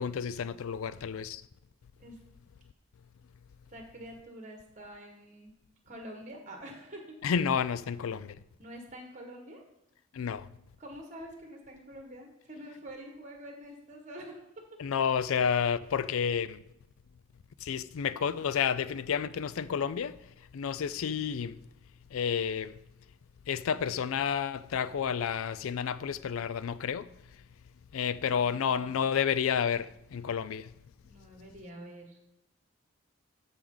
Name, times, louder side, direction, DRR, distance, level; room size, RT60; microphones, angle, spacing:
voice 1, 0.0-1.4 7.2-8.4 10.1-10.5 14.8-16.6 17.6-20.2 20.5-21.6 22.1-22.7 23.5-27.1 27.9-30.7, left 7 dB, 75° left, 0.4 m, -30 dB
voice 2, 3.7-5.5 5.8-7.2 8.6-9.6 10.8-14.6 28.1-29.1 31.0-32.2, equal, 35° right, 1.6 m, -47 dB
13.0 x 4.9 x 3.9 m
head